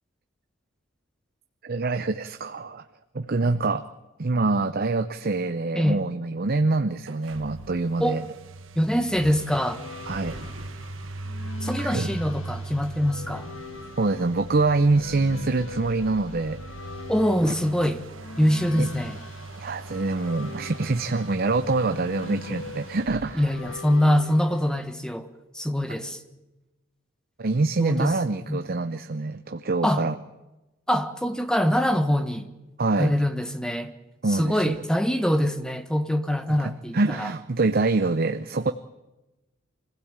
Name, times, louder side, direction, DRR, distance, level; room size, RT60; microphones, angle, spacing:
voice 1, 1.6-2.8 3.1-3.9 4.2-8.2 10.1-10.4 11.8-12.1 14.0-16.6 18.8-18.9 19.6-23.5 27.4-30.1 32.8-33.1 34.2-34.7 36.5-38.7, right 3 dB, 50° right, 0.7 m, -25 dB
sound 1, 7.0-24.5, right 2 dB, 90° right, 1.4 m, -40 dB
voice 2, 8.7-9.8 11.6-13.5 17.1-18.0 18.4-19.2 23.4-25.3 25.5-26.2 27.8-28.1 28.5-28.6 29.8-30.0 30.9-32.5 33.0-33.9 34.3-37.3, equal, 5° left, 1.3 m, -24 dB
sound 2, 9.2-24.9, left 3 dB, 85° left, 1.7 m, -42 dB
25.0 x 16.0 x 8.9 m
head